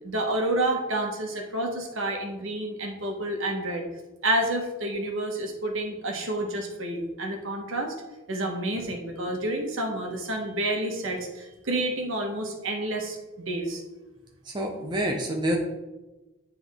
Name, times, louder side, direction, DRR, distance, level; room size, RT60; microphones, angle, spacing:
voice 1, 0.0-3.9 4.2-7.9 8.3-13.8, right 1 dB, 65° right, 2 dB, 1.1 m, -29 dB
voice 2, 14.5-15.6, equal, 20° right, 1 dB, 0.6 m, -27 dB
9.3 x 3.5 x 3.6 m, 1.1 s
head